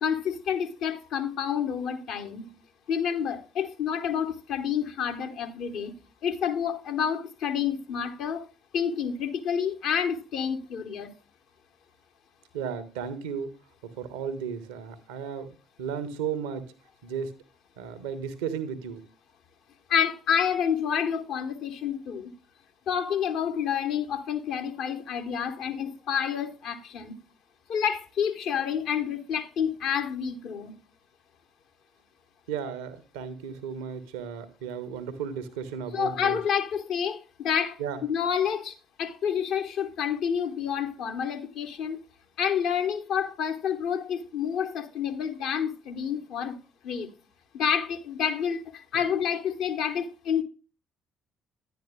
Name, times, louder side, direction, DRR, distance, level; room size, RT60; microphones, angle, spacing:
voice 1, 0.0-2.5 2.9-5.9 6.2-8.4 8.7-11.1 19.9-22.3 22.9-27.1 27.7-30.7 35.9-38.7 39.0-42.0 42.4-46.5 46.8-47.1 47.5-48.6 48.9-50.4, left 8 dB, 60° left, 1.0 m, -29 dB
voice 2, 12.5-13.5 13.8-16.7 17.0-17.3 17.8-19.0 32.5-36.4 37.8-38.0, right 7 dB, 70° right, 0.8 m, -34 dB
10.5 x 9.1 x 2.2 m
figure-of-eight pair, 45°, 0 cm